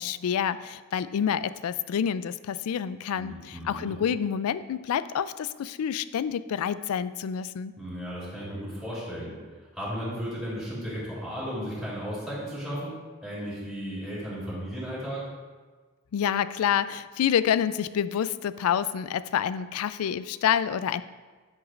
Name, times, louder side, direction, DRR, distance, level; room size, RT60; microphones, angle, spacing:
voice 1, 0.0-7.7 16.1-21.0, left 8 dB, 85° left, 15 dB, 0.3 m, -28 dB
voice 2, 3.1-3.9 7.8-13.0 13.2-15.2, equal, ahead, -9 dB, 2.7 m, -35 dB
10.0 x 8.3 x 2.5 m, 1.4 s
head